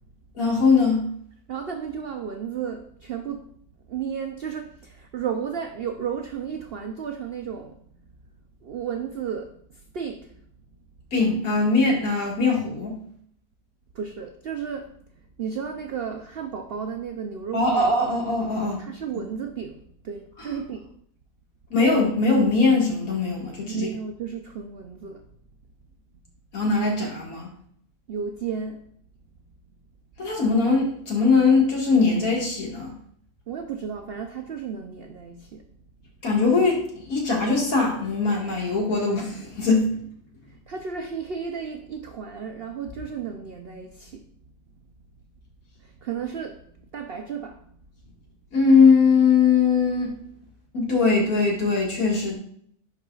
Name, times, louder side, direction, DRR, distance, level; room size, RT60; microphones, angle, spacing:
voice 1, 0.4-1.0 11.1-13.0 17.5-18.8 20.4-20.5 21.7-23.9 26.5-27.5 30.2-32.9 36.2-40.0 48.5-50.1 50.7-52.4, left 4 dB, 65° left, -2 dB, 2.2 m, -21 dB
voice 2, 1.5-3.6 3.9-7.8 8.6-10.4 13.9-17.9 18.8-20.9 23.7-25.2 28.1-28.8 33.5-35.7 40.5-44.3 45.8-47.6, right 7 dB, 70° right, 5 dB, 0.5 m, -33 dB
10.5 x 4.6 x 2.4 m, 0.64 s
omnidirectional pair, 1.7 m